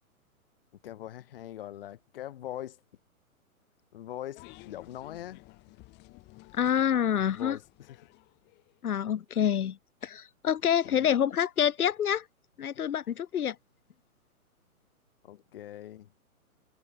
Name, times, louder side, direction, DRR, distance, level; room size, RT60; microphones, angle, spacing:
voice 1, 0.8-2.8 3.9-5.4 7.3-8.0 10.9-11.2 15.2-16.1, left 12 dB, 40° left, 0.7 m, -42 dB
sound 1, 4.3-8.8, left 23 dB, 25° left, 2.1 m, -54 dB
voice 2, 6.5-7.6 8.8-9.8 10.0-12.3 12.6-13.6, left 9 dB, 80° left, 0.6 m, -27 dB
figure-of-eight pair, 125°, 44 cm